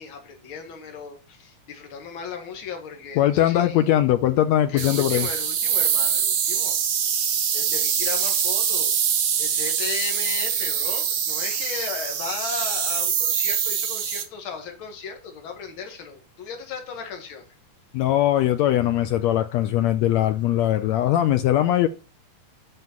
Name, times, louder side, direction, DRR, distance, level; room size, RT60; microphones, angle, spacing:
voice 1, 0.0-3.8 4.7-6.8 7.5-8.9 9.4-17.5, left 6 dB, 45° left, 2.2 m, -36 dB
voice 2, 3.2-5.3 17.9-21.9, left 12 dB, 80° left, 1.5 m, -20 dB
sound 1, 4.8-14.2, right 8 dB, 55° right, 2.0 m, -24 dB
7.9 x 5.8 x 7.3 m
omnidirectional pair, 3.8 m